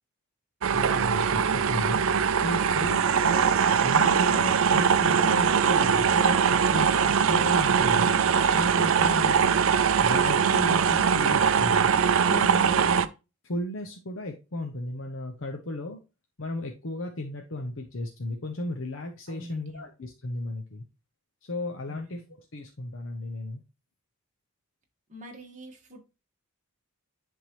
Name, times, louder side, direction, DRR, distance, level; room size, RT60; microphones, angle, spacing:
sound 1, 0.6-13.1, right 7 dB, 65° right, 0.4 m, -22 dB
voice 1, 0.7-2.0 2.4-3.5 3.8-8.2 8.5-9.6 10.0-11.9 12.2-12.9 13.4-16.0 16.4-20.8 21.4-22.2 22.5-23.6, left 1 dB, 60° left, 0.9 m, -34 dB
voice 2, 12.7-13.1 19.3-19.9 21.9-22.0 25.1-26.0, equal, 35° right, 1.7 m, -44 dB
10.5 x 3.7 x 3.1 m
head